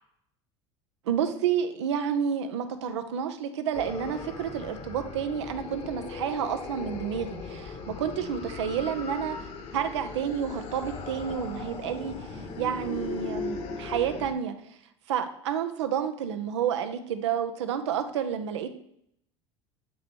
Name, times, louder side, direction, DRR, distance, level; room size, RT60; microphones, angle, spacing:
voice 1, 1.1-7.6 8.0-14.8 15.1-18.7, right 8 dB, 75° right, 8 dB, 0.6 m, -30 dB
sound 1, 3.7-14.3, left 4 dB, 45° left, 1.0 m, -38 dB
8.2 x 3.1 x 4.3 m, 0.73 s
hypercardioid pair, 75°, 15 cm